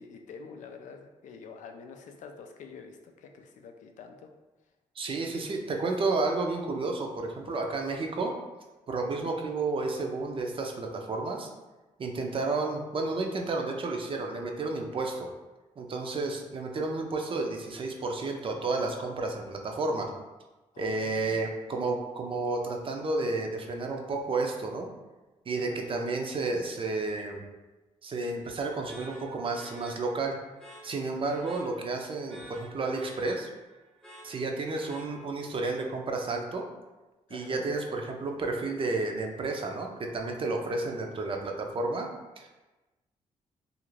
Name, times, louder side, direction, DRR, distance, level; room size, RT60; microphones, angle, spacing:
voice 1, 0.0-4.3 20.7-21.5 25.6-25.8 37.3-37.6, left 5 dB, 75° left, 5 dB, 0.4 m, -47 dB
voice 2, 5.0-8.3 8.9-11.5 12.0-15.3 15.8-20.1 20.8-24.9 25.5-27.4 28.0-30.4 30.8-33.5 34.2-36.7 37.3-42.1 42.4-42.5, right 3 dB, 45° right, 2 dB, 0.5 m, -31 dB
sound 1, 28.9-35.6, right 1 dB, 5° left, 0.7 m, -51 dB
2.5 x 2.4 x 3.1 m, 1.1 s
cardioid pair, 75°, 13 cm